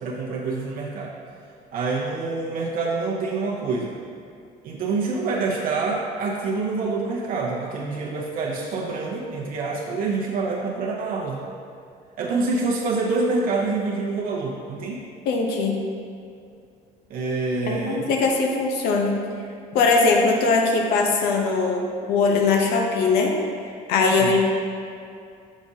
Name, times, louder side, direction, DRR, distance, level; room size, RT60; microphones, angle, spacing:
voice 1, 0.0-1.1 1.7-4.0 4.6-11.4 12.2-15.0 17.1-18.1 24.2-24.4, right 3 dB, 65° right, -2 dB, 0.7 m, -26 dB
voice 2, 15.2-15.8 17.7-19.2 19.7-23.3 23.9-24.5, left 4 dB, 85° left, 1 dB, 0.8 m, -20 dB
7.3 x 4.9 x 2.7 m, 2.4 s
cardioid pair, 125°, 16 cm